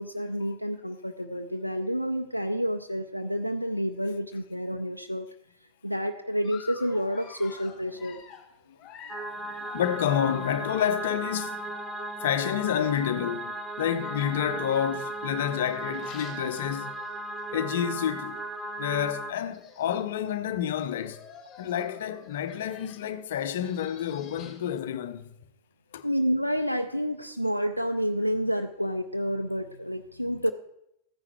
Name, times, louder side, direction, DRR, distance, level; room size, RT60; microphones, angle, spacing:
voice 1, 0.0-5.3 5.6-8.2 26.0-30.5, equal, 90° left, 0.5 m, -29 dB
Dog, 6.4-13.0 13.8-17.4 17.8-18.0 18.3-18.4 19.2-19.3 19.5-20.1 20.7-24.8, left 8 dB, 30° left, 2.5 m, -50 dB
sound 1, 9.1-19.3, right 1 dB, 5° right, 1.0 m, -36 dB
voice 2, 9.3-11.7 12.2-17.0 17.5-18.4 18.8-21.2 21.6-25.3 25.9-26.1, left 9 dB, 55° left, 0.8 m, -29 dB
14.5 x 9.7 x 4.6 m
figure-of-eight pair, 90°, 0 cm